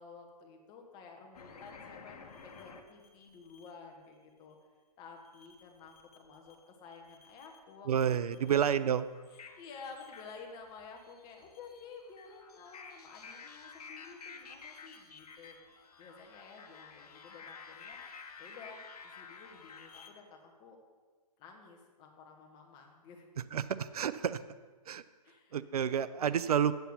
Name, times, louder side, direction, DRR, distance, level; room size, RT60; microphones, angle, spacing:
voice 1, 0.0-4.6 5.0-8.5 9.3-15.6 16.0-18.0 18.4-20.8 21.4-23.3 25.2-25.6, left 5 dB, 20° left, 2 dB, 1.4 m, -52 dB
sound 1, 1.3-3.7 5.2-6.5 6.9-7.7 8.1-20.1, left 5 dB, 65° left, 1.3 m, -52 dB
voice 2, 7.9-9.1 23.5-24.4 24.9-25.0 25.5-26.7, right 8 dB, 70° right, 15 dB, 0.5 m, -29 dB
8.0 x 6.9 x 7.2 m, 1.4 s
hypercardioid pair, 145°, 20 cm